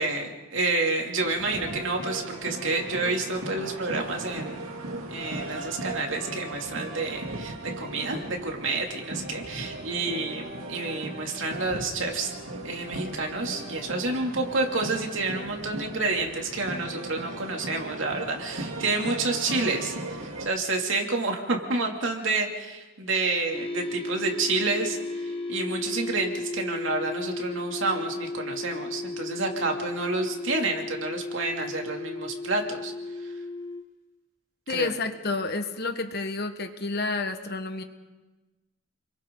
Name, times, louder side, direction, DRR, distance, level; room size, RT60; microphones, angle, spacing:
voice 1, 0.0-4.8 5.1-12.3 12.6-32.9 33.2-33.3 34.7-34.9, right 3 dB, 65° right, 1 dB, 2.8 m, -29 dB
sound 1, 1.2-20.5, right 2 dB, 80° right, 2.3 m, -37 dB
sound 2, 23.5-33.8, left 2 dB, 25° left, 1.3 m, -34 dB
voice 2, 34.7-37.8, left 3 dB, 50° left, 7 dB, 1.5 m, -30 dB
29.5 x 22.5 x 4.0 m, 1.2 s
head